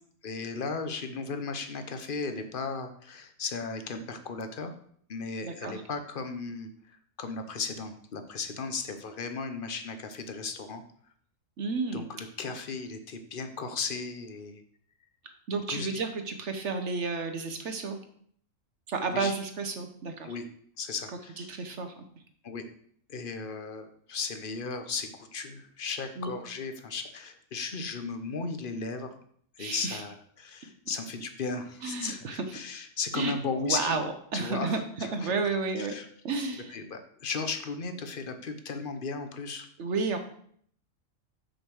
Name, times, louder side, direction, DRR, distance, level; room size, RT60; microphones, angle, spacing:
voice 1, 0.2-4.7 5.1-10.8 11.9-14.6 15.7-15.9 19.1-19.3 20.2-20.4 20.8-21.5 22.4-22.6 23.1-29.1 29.6-34.0 34.3-36.1 36.7-39.7, left 4 dB, 45° left, 8 dB, 0.9 m, -36 dB
voice 2, 5.4-5.8 11.6-12.1 15.5-18.0 18.9-20.3 21.4-21.9 26.2-26.3 29.6-30.0 31.8-32.4 33.1-35.9 36.2-36.8 39.8-40.2, right 4 dB, 65° right, 6 dB, 1.1 m, -32 dB
6.3 x 5.1 x 6.2 m, 0.62 s
omnidirectional pair, 1.4 m